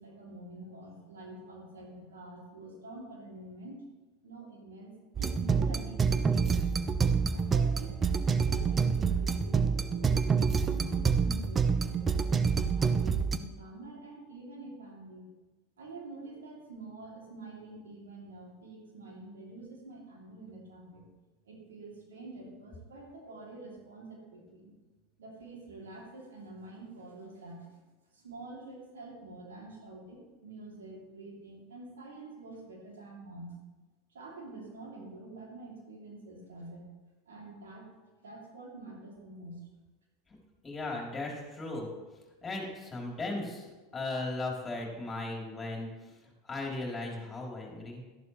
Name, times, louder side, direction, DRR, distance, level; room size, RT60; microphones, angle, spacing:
voice 1, 0.0-3.9 4.2-4.9 5.2-6.8 7.3-12.4 12.7-15.2 15.8-21.1 21.4-24.7 25.2-27.8 28.1-33.6 34.1-36.8 37.3-37.9 38.2-39.6, right 2 dB, 80° right, -2 dB, 2.8 m, -47 dB
sound 1, 5.2-13.4, right 5 dB, 25° right, 0.6 m, -27 dB
voice 2, 40.6-41.9 42.4-48.0, left 2 dB, 20° left, -1 dB, 3.3 m, -37 dB
12.5 x 11.0 x 3.2 m, 1.2 s
hypercardioid pair, 85°, 0 cm